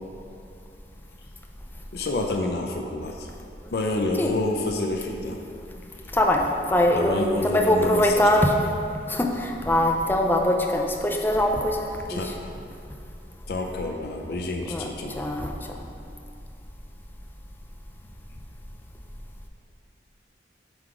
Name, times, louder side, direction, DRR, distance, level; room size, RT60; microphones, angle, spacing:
voice 1, 1.9-3.3 3.7-5.4 7.0-8.3 12.1-12.5 13.5-15.2, left 2 dB, 60° left, 2 dB, 0.5 m, -28 dB
voice 2, 6.1-8.5 9.1-12.3 14.7-14.8 15.2-15.5, left 1 dB, 10° left, 2 dB, 0.4 m, -22 dB
7.8 x 3.8 x 4.9 m, 2.6 s
head